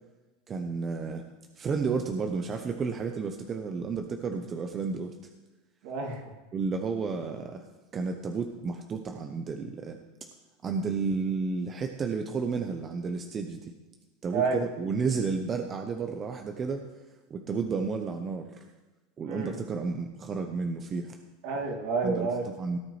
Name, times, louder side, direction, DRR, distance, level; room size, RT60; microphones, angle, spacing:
voice 1, 0.5-1.2 1.6-5.2 6.5-7.7 7.9-10.0 10.6-13.7 14.2-16.9 17.3-18.6 19.2-21.2 22.0-22.8, right 4 dB, 30° right, 4 dB, 0.8 m, -32 dB
voice 2, 5.8-6.2 14.3-14.6 19.3-19.6 21.4-22.5, right 4 dB, 60° right, 2 dB, 2.4 m, -29 dB
17.5 x 8.8 x 3.2 m, 1.1 s
supercardioid pair, 120°, 0 cm